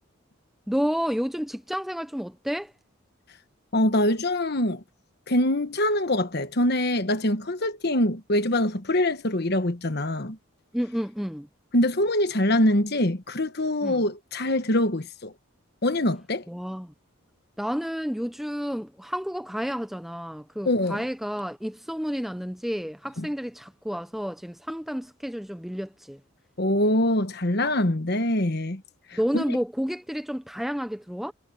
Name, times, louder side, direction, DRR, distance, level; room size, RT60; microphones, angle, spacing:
voice 1, 0.7-2.7 10.7-11.5 13.8-14.0 16.5-16.9 17.6-26.2 29.1-31.3, equal, ahead, 0.5 m, -30 dB
voice 2, 3.7-4.8 5.3-10.4 11.7-15.3 15.8-16.4 20.7-21.0 23.2-23.3 26.6-28.8 29.3-29.4, left 1 dB, 50° left, 1.3 m, -24 dB
head